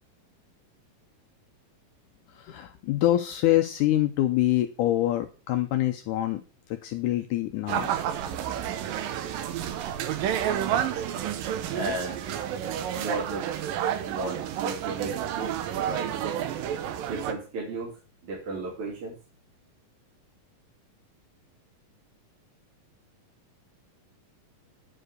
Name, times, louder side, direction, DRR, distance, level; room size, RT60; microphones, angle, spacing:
voice 1, 2.4-6.4 6.7-7.9, left 14 dB, 75° left, 7 dB, 2.0 m, -25 dB
sound 1, 7.7-17.3, right 10 dB, 80° right, 2.6 m, -30 dB
voice 2, 11.7-12.2 12.9-13.5 14.1-16.1 17.1-17.9 18.2-19.1, right 2 dB, 55° right, -4 dB, 4.9 m, -34 dB
9.9 x 4.9 x 6.3 m, 0.33 s
omnidirectional pair, 4.0 m